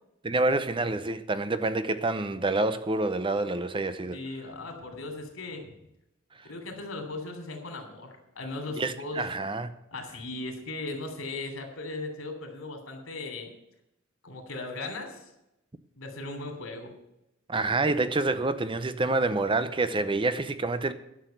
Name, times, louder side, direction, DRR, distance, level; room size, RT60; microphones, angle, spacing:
voice 1, 0.2-4.2 8.7-9.7 17.5-20.9, right 2 dB, 25° right, 0.6 m, -27 dB
voice 2, 4.1-5.7 6.4-9.3 9.9-13.5 14.2-15.2 16.0-16.9, left 2 dB, 90° left, 3.1 m, -37 dB
11.5 x 6.4 x 9.1 m
head